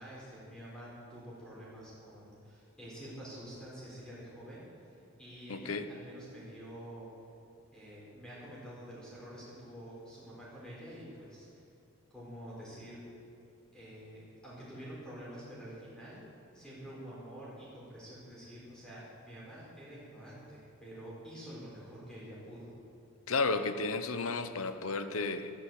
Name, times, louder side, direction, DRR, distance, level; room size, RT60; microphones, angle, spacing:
voice 1, 0.0-4.9 5.2-7.1 7.7-11.6 12.1-13.0 13.7-16.2 16.5-22.7, equal, 5° left, -8 dB, 4.6 m, -48 dB
voice 2, 5.5-5.8 23.3-25.5, left 3 dB, 75° left, 10 dB, 0.9 m, -32 dB
12.5 x 11.5 x 7.6 m, 2.6 s
head